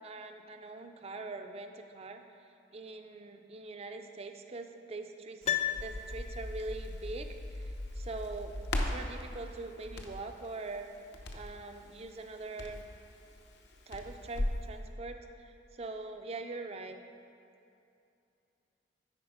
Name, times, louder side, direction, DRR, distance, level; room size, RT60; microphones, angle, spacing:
voice 1, 0.0-2.2 2.7-7.3 7.5-10.9 11.3-12.8 13.9-17.0, right 3 dB, 35° right, 6 dB, 0.4 m, -43 dB
Crackle, 5.4-14.7, left 1 dB, 65° left, 0.7 m, -39 dB
Piano, 5.4-6.7 7.0-7.1, left 10 dB, 35° left, 0.3 m, -34 dB
9.7 x 4.1 x 5.1 m, 2.6 s
head